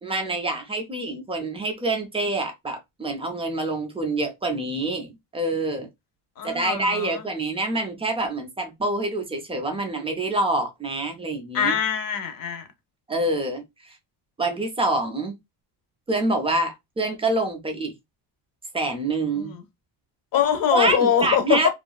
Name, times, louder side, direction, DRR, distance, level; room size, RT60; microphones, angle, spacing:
voice 1, 0.0-5.9 6.4-11.7 13.1-14.0 14.4-15.4 16.1-17.9 18.7-19.5 20.7-21.7, right 2 dB, 15° right, 0.3 m, -26 dB
voice 2, 6.4-7.3 11.5-12.7 19.3-19.6 20.3-21.7, left 8 dB, 45° left, 0.7 m, -23 dB
2.7 x 2.4 x 2.2 m
cardioid pair, 170°, 47 cm